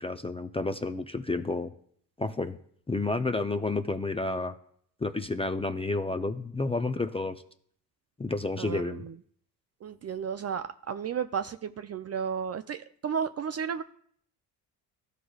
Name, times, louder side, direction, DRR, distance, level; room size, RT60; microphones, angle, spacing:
voice 1, 0.0-1.7 2.2-2.6 2.9-4.5 5.0-7.4 8.2-9.1, left 3 dB, 15° left, 9 dB, 0.5 m, -30 dB
voice 2, 8.6-9.1 9.8-13.8, right 7 dB, 35° right, 10 dB, 0.4 m, -33 dB
13.5 x 4.9 x 2.4 m, 0.65 s
hypercardioid pair, 55°, 44 cm